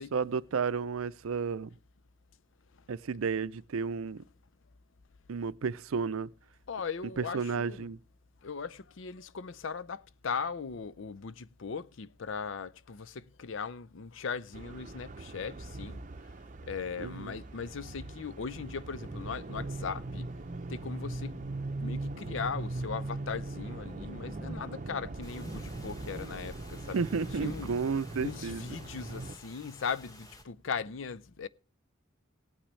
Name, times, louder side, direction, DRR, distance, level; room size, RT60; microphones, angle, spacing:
voice 1, 0.0-1.7 2.9-4.2 5.3-6.3 7.2-8.0 17.0-17.4 26.9-28.6, right 5 dB, 80° right, 0.5 m, -32 dB
voice 2, 6.7-7.9 8.4-16.0 16.7-20.3 20.7-21.4 21.8-27.0 27.4-27.7 28.2-31.5, left 5 dB, 65° left, 0.5 m, -38 dB
sound 1, 14.5-29.4, right 2 dB, 35° right, 0.6 m, -40 dB
sound 2, 25.2-30.4, equal, 15° left, 1.6 m, -51 dB
17.5 x 8.8 x 3.2 m
head